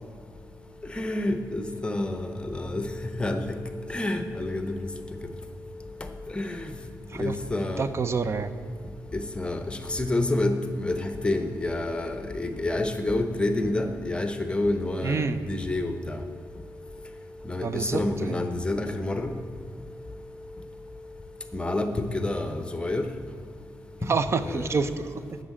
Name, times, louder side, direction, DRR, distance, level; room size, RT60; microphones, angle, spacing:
voice 1, 1.0-2.8 3.2-3.4 3.9-4.7 6.4-6.6 7.2-7.8 9.4-9.6 9.9-10.5 10.8-15.2 15.5-16.2 17.5-17.7 17.9-19.3 21.5-23.0 24.4-24.6, left 2 dB, 15° left, 7 dB, 1.0 m, -28 dB
voice 2, 7.6-8.5 15.0-15.4 17.6-18.4 24.0-25.4, right 5 dB, 45° right, 12 dB, 0.7 m, -28 dB
8.7 x 6.7 x 8.4 m, 2.3 s
cardioid pair, 80°, 6 cm